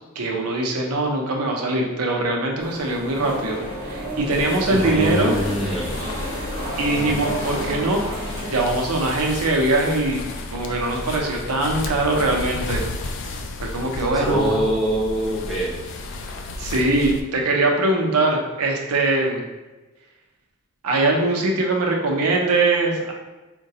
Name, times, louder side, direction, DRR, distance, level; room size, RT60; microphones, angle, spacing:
voice 1, 0.2-5.3 6.8-8.0 8.5-12.8 13.6-14.6 16.6-19.4 20.8-23.1, right 2 dB, 90° right, 1 dB, 0.6 m, -22 dB
sound 1, 2.6-8.6, equal, 45° right, 1.0 m, -30 dB
sound 2, 4.3-17.2, left 2 dB, 55° left, 0.3 m, -33 dB
voice 2, 4.7-5.9 14.1-15.8, right 1 dB, ahead, -5 dB, 0.5 m, -24 dB
3.8 x 2.2 x 2.7 m, 1.2 s
head